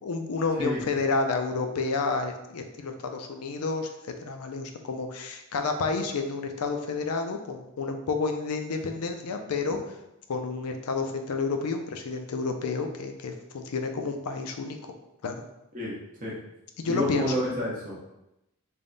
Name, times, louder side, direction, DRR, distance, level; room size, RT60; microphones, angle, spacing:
voice 1, 0.0-10.0 10.3-14.9 15.2-15.4 16.8-17.3, left 4 dB, 85° left, 5 dB, 0.5 m, -30 dB
voice 2, 15.7-16.4 16.8-18.0, equal, 35° right, -5 dB, 0.9 m, -29 dB
3.4 x 2.3 x 3.9 m, 0.89 s
head